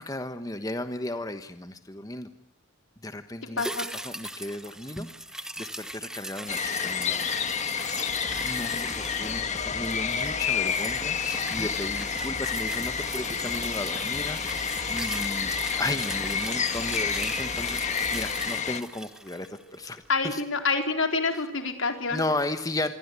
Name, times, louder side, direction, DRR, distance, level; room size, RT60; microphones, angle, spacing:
voice 1, 0.0-2.3 3.0-3.7 4.0-5.1 5.3-7.2 8.4-17.8 18.1-20.4 21.3-21.4 22.1-22.9, left 1 dB, 20° left, 9 dB, 1.2 m, -35 dB
voice 2, 3.6-3.9 8.6-8.9 19.7-19.8 20.1-22.2, left 4 dB, 75° left, 6 dB, 4.1 m, -27 dB
sound 1, 3.6-20.1 20.4-20.5, right 1 dB, 5° right, 1.0 m, -39 dB
sound 2, 6.5-18.8, left 6 dB, 35° left, 1.7 m, -29 dB
sound 3, 8.1-18.5, equal, 25° right, 2.7 m, -44 dB
27.0 x 23.0 x 8.3 m, 0.68 s
head